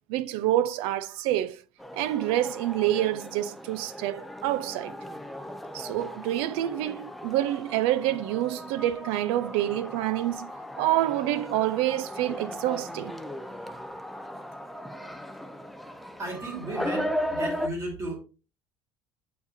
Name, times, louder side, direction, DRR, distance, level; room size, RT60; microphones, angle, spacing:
voice 1, 0.1-1.6 1.9-4.9 5.7-10.5 10.8-13.1, right 13 dB, 75° right, 0.5 m, -27 dB
sound 1, 1.8-17.7, equal, ahead, 0.4 m, -37 dB
voice 2, 16.2-18.2, right 2 dB, 30° right, 2.5 m, -35 dB
8.2 x 4.8 x 2.6 m
cardioid pair, 170°, 10 cm